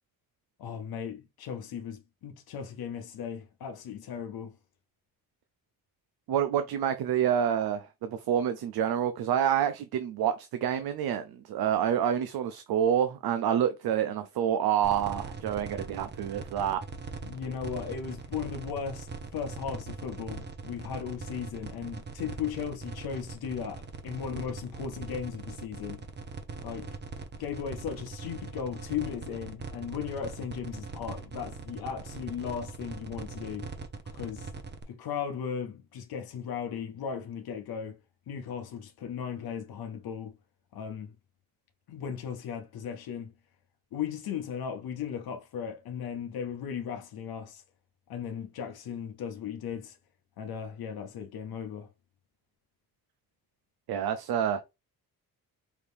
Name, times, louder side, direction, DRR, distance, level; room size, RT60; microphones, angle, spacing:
voice 1, 0.6-4.5 17.2-26.0 26.6-26.9 27.4-33.7 34.1-34.5 34.9-38.0 38.3-40.4 40.7-41.1 41.9-43.3 43.9-47.6 48.1-50.0 50.4-51.9, left 7 dB, 80° left, 0.8 m, -37 dB
voice 2, 6.3-16.8 53.9-54.6, right 9 dB, 80° right, 0.6 m, -28 dB
sound 1, 14.8-34.8, right 4 dB, 30° right, 0.7 m, -41 dB
4.7 x 2.6 x 3.4 m
cardioid pair, 100°, 36 cm